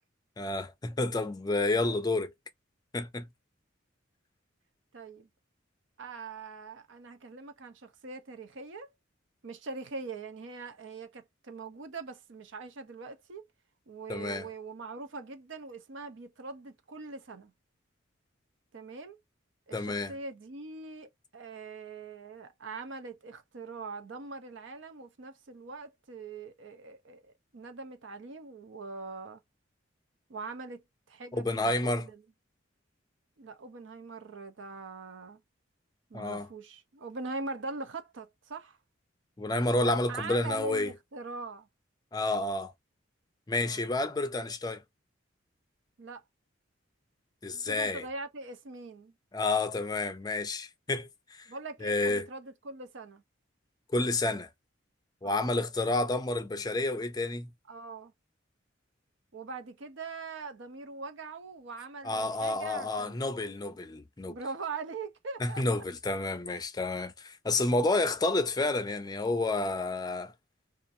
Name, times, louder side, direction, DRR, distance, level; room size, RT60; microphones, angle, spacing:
voice 1, 0.4-2.3 2.9-3.3 14.1-14.5 19.7-20.1 31.3-32.1 36.1-36.5 39.4-40.9 42.1-42.7 43.5-44.8 47.4-48.0 49.3-51.5 51.8-52.3 53.9-54.5 55.2-57.5 62.0-64.4 65.4-70.3, left 2 dB, 20° left, 0.4 m, -30 dB
voice 2, 4.9-5.3 6.0-8.9 9.4-13.4 13.9-17.5 18.7-19.2 19.7-29.4 30.3-30.8 31.1-32.2 33.4-35.4 36.1-38.8 39.8-41.7 43.6-43.8 46.0-46.2 47.7-49.1 51.5-53.2 55.2-55.5 57.7-58.1 59.3-63.2 64.3-65.8, right 3 dB, 70° right, 0.6 m, -42 dB
2.5 x 2.4 x 2.5 m
head